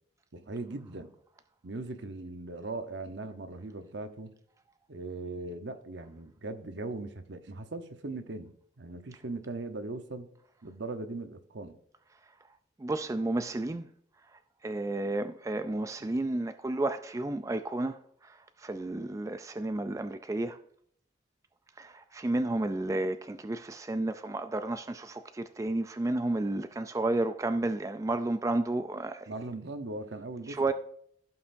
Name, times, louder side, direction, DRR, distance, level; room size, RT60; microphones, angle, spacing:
voice 1, 0.3-1.1 1.6-4.3 4.9-10.3 10.6-11.8 16.0-16.2 29.3-30.7, right 2 dB, 75° right, 0.9 m, -39 dB
voice 2, 12.8-13.9 14.6-18.0 18.2-20.6 21.8-29.3 30.5-30.7, right 2 dB, 15° right, 0.3 m, -32 dB
15.5 x 5.8 x 2.6 m
head